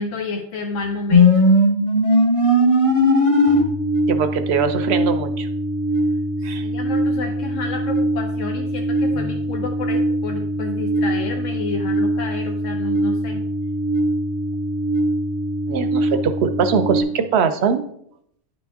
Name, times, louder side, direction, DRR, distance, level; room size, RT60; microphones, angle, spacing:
voice 1, 0.0-1.4 6.4-13.4, left 3 dB, 80° left, 3 dB, 1.1 m, -30 dB
sound 1, 1.1-17.0, equal, 30° left, 1.0 m, -20 dB
voice 2, 4.1-5.5 6.4-6.7 15.7-17.8, right 6 dB, 65° right, 10 dB, 0.8 m, -21 dB
10.0 x 4.2 x 3.5 m, 0.71 s
omnidirectional pair, 1.3 m